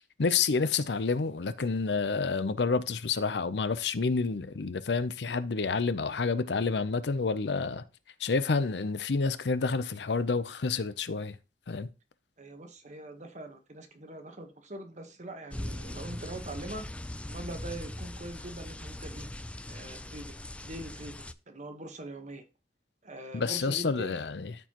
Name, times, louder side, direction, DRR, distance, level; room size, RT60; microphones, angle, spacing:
voice 1, 0.0-7.8 8.2-11.4 11.7-11.9 23.3-24.6, left 4 dB, 70° left, 0.6 m, -29 dB
voice 2, 12.4-16.9 17.3-19.3 19.7-22.4 23.0-24.2, right 1 dB, 45° right, 1.2 m, -43 dB
sound 1, 15.5-21.3, left 1 dB, 5° left, 0.3 m, -40 dB
13.0 x 4.6 x 3.0 m
head